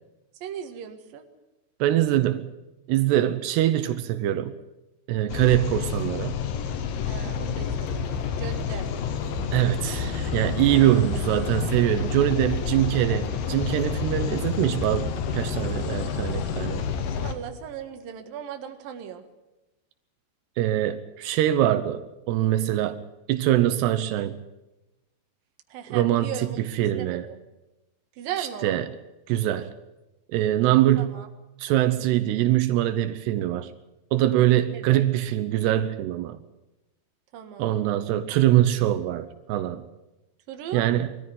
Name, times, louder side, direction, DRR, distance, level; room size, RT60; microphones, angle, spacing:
voice 1, 0.4-1.3 7.0-8.8 17.2-19.3 25.7-27.4 28.2-28.8 31.0-31.3 34.7-35.1 37.3-37.9 40.5-40.9, right 9 dB, 65° right, 6 dB, 3.2 m, -37 dB
voice 2, 1.8-2.5 2.9-4.5 5.1-6.4 9.5-16.8 20.6-22.0 22.3-23.0 23.3-24.4 25.9-27.3 28.4-28.9 29.3-29.7 30.3-31.2 31.6-33.7 34.1-36.4 37.6-39.8 40.7-41.1, right 13 dB, 85° right, 10 dB, 3.0 m, -23 dB
sound 1, 5.3-17.3, left 6 dB, 65° left, 2.8 m, -29 dB
22.0 x 14.0 x 9.3 m, 1.0 s
omnidirectional pair, 4.7 m